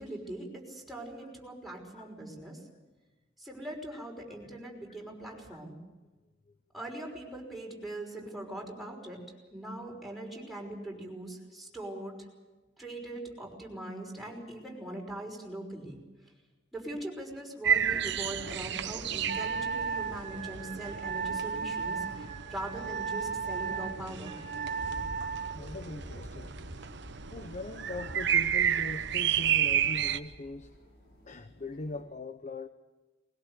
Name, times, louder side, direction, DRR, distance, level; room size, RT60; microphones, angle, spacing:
voice 1, 0.0-2.6 3.4-5.8 6.7-9.2 9.5-12.2 12.8-16.0 16.7-24.4, right 1 dB, ahead, 5.6 m, -41 dB
sound 1, 17.6-30.2, right 9 dB, 65° right, 1.0 m, -32 dB
Wind instrument woodwind instrument, 19.3-25.6, right 6 dB, 45° right, 1.5 m, -35 dB
sound 2, 24.4-32.0, left 1 dB, 60° left, 6.2 m, -49 dB
voice 2, 25.5-26.5 27.3-30.7 31.3-32.7, left 2 dB, 40° left, 0.9 m, -41 dB
21.5 x 20.5 x 8.2 m
head